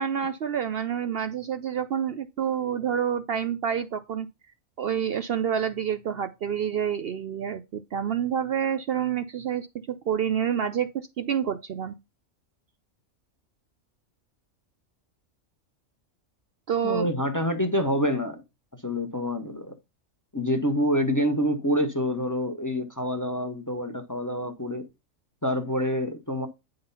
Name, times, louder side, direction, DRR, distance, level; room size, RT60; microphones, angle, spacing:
voice 1, 0.0-4.3 4.8-11.9 16.7-17.1, right 8 dB, 60° right, 0.7 m, -28 dB
voice 2, 16.8-18.4 18.8-19.7 20.3-24.8 25.4-26.5, equal, 15° left, 0.8 m, -27 dB
9.4 x 3.9 x 5.6 m
omnidirectional pair, 1.3 m